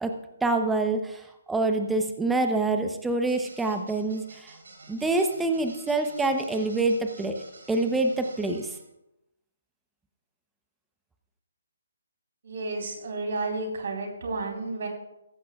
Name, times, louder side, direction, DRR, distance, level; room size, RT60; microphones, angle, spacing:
voice 1, 0.4-4.5 4.9-8.7, right 2 dB, 5° right, 5 dB, 0.8 m, -26 dB
sound 1, 3.3-8.8, right 3 dB, 80° right, 3.7 m, -50 dB
voice 2, 12.4-14.9, right 3 dB, 60° right, 2 dB, 3.9 m, -31 dB
16.0 x 15.0 x 2.4 m, 0.89 s
hypercardioid pair, 150°, 0 cm